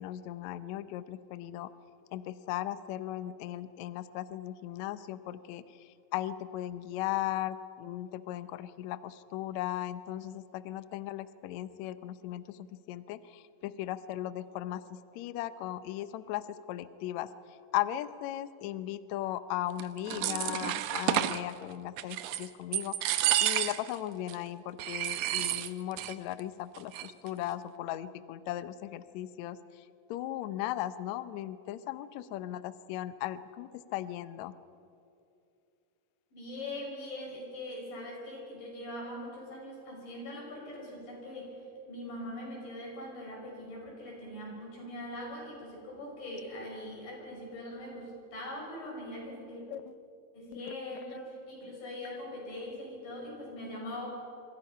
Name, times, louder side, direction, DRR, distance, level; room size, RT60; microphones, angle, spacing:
voice 1, 0.0-1.7 2.1-34.5 49.7-49.9 50.5-50.7 51.1-51.2 52.1-52.2, left 13 dB, 85° left, 13 dB, 1.6 m, -37 dB
sound 1, 19.8-21.4 22.0-22.5 22.7-24.0 24.3-24.4 24.8-26.1 26.4-26.5 26.8-27.3, right 13 dB, 75° right, 1.9 m, -30 dB
voice 2, 36.3-41.6 41.9-49.6 50.3-54.1, left 1 dB, 65° left, -1 dB, 7.3 m, -42 dB
27.0 x 24.5 x 5.6 m, 2.6 s
omnidirectional pair, 4.3 m